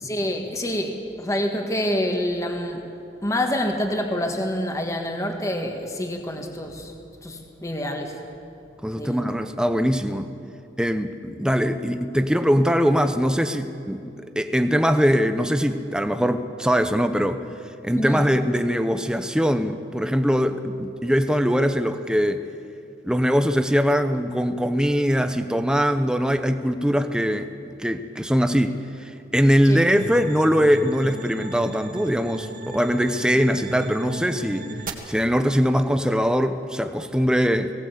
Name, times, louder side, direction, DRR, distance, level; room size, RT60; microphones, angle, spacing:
voice 1, 0.0-2.8 3.2-6.9 7.2-8.1 9.0-9.2 18.0-18.2 29.6-29.8, left 1 dB, 15° left, 3 dB, 1.6 m, -27 dB
voice 2, 8.8-10.3 10.8-17.4 17.8-22.4 23.0-27.5 27.8-34.7 35.1-37.7, equal, 5° right, 8 dB, 0.7 m, -22 dB
sound 1, 29.9-34.9, right 1 dB, 45° right, 1.9 m, -36 dB
19.5 x 17.5 x 8.3 m, 2.7 s
head